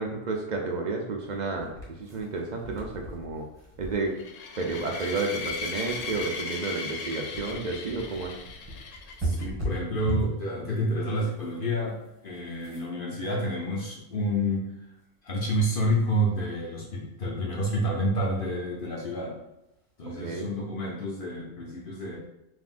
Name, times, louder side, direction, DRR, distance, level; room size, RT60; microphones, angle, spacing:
voice 1, 0.0-1.7 2.0-3.5 3.8-4.2 4.6-8.4 20.2-20.5, right 3 dB, 70° right, 1 dB, 0.4 m, -31 dB
sound 1, 1.2-10.4 11.2-11.6 11.9-12.1 12.3-13.1, right 1 dB, 25° right, 1.5 m, -37 dB
sound 2, 4.2-9.5, left 4 dB, 90° left, 1.1 m, -37 dB
voice 2, 9.2-12.0 12.2-14.6 15.2-19.3 20.0-22.2, equal, 50° left, -2 dB, 0.8 m, -29 dB
5.8 x 2.7 x 2.5 m, 0.87 s
omnidirectional pair, 1.5 m